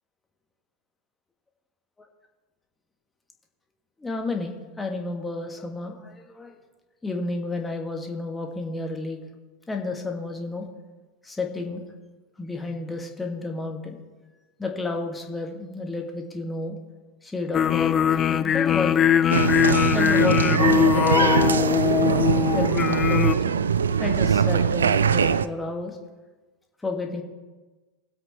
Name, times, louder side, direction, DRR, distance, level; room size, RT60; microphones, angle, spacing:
voice 1, 4.0-6.6 7.0-9.2 9.7-10.7 11.2-11.8 12.4-14.0 14.6-16.8 17.2-19.0 19.9-21.5 22.5-23.6 24.0-26.0 26.8-27.2, left 3 dB, 10° left, 2 dB, 1.7 m, -31 dB
sound 1, 17.5-23.3, left 9 dB, 25° left, 0.5 m, -21 dB
Applause, 19.3-25.5, right 7 dB, 70° right, 0.4 m, -22 dB
21.0 x 7.9 x 3.1 m, 1.2 s
figure-of-eight pair, 85°, 0 cm